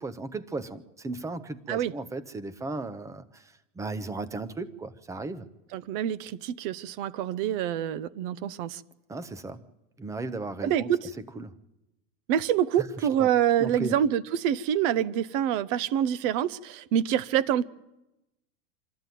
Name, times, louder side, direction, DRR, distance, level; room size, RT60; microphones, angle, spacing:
voice 1, 0.0-5.5 9.1-9.6 10.0-10.9 11.4-11.5 12.8-12.9 13.2-13.3 13.6-14.0, right 3 dB, 10° right, 0.7 m, -36 dB
voice 2, 5.7-8.8 10.6-11.1 12.3-17.6, right 10 dB, 45° right, 0.8 m, -26 dB
25.0 x 13.0 x 9.2 m
supercardioid pair, 145°, 36 cm